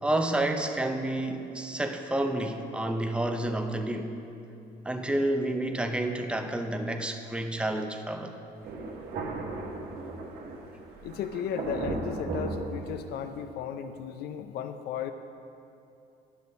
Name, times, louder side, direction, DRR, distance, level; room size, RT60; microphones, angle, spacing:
voice 1, 0.0-4.2 4.8-8.3, right 1 dB, 5° right, 5 dB, 0.6 m, -29 dB
Thunder, 8.6-13.4, right 2 dB, 70° right, 1.3 m, -36 dB
voice 2, 11.0-15.1, left 8 dB, 70° left, 9 dB, 0.5 m, -35 dB
10.0 x 5.5 x 6.3 m, 2.7 s
cardioid pair, 110°, 17 cm